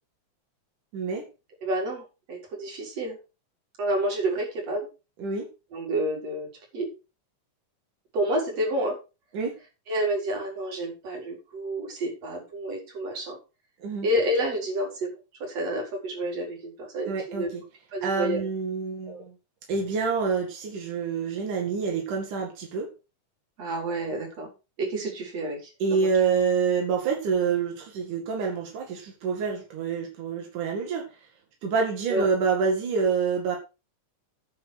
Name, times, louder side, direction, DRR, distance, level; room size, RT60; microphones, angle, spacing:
voice 1, 0.9-1.3 5.2-5.5 9.3-9.6 13.8-14.1 17.1-17.6 18.0-19.2 19.7-22.9 25.8-31.1 31.6-33.6, right 5 dB, 90° right, 0 dB, 3.7 m, -27 dB
voice 2, 1.6-3.2 3.8-4.9 5.7-6.5 6.7-6.9 8.1-9.0 9.9-13.4 14.0-15.1 15.4-17.5 17.9-18.4 19.1-19.2 23.6-24.5 24.8-25.6 25.9-26.1 32.1-32.2, right 1 dB, 55° right, 0 dB, 5.7 m, -29 dB
9.5 x 8.4 x 6.3 m, 0.30 s
omnidirectional pair, 3.5 m